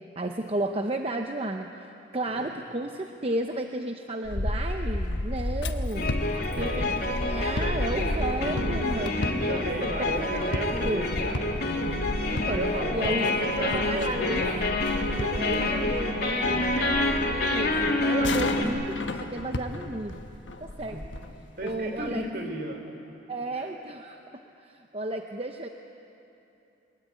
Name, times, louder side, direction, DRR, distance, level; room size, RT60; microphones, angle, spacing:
voice 1, 0.2-1.7 2.1-6.3 6.6-11.1 12.3-14.5 15.4-16.6 17.3-20.2 20.6-21.0 21.6-22.2 23.3-24.2 24.6-25.7, right 1 dB, 30° right, 4 dB, 0.8 m, -33 dB
sound 1, 4.2-22.3, left 1 dB, 80° left, 1.2 m, -33 dB
sound 2, 6.0-18.7, left 2 dB, 55° left, 3.1 m, -28 dB
voice 2, 6.5-6.9 7.6-8.0 8.4-8.5 8.9-11.7 12.2-14.4 15.0-17.4 20.8-21.0 21.6-22.8 23.5-23.7, right 1 dB, 55° right, 4 dB, 3.4 m, -35 dB
24.0 x 21.0 x 9.5 m, 2.9 s
head